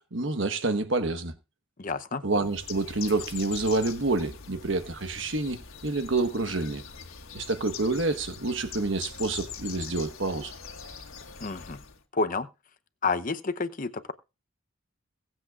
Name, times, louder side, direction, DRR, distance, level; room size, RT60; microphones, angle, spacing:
voice 1, 0.0-1.3 2.2-6.8 7.3-10.5, right 3 dB, 60° right, 1.3 m, -28 dB
voice 2, 1.8-2.2 11.4-11.8 12.1-12.5 13.0-14.1, left 4 dB, 40° left, 0.8 m, -29 dB
Bird, 2.4-12.0, left 6 dB, 75° left, 1.7 m, -43 dB
22.5 x 7.8 x 2.5 m
head